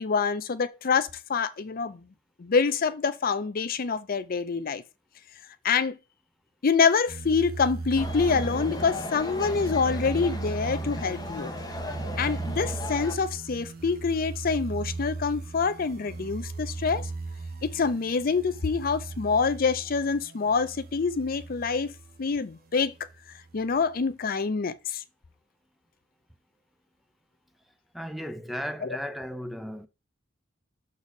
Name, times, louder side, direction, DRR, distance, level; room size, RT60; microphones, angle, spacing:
voice 1, 0.0-2.0 2.4-4.8 5.6-6.0 6.6-11.5 12.2-17.1 17.6-21.9 22.2-22.9 23.5-25.0, left 5 dB, 50° left, 0.5 m, -26 dB
sound 1, 7.1-22.3 22.9-23.9, right 3 dB, 50° right, 0.9 m, -37 dB
sound 2, 7.9-13.2, left 1 dB, 20° left, 1.1 m, -36 dB
voice 2, 27.9-29.9, equal, ahead, 0.4 m, -35 dB
6.3 x 4.1 x 4.8 m
head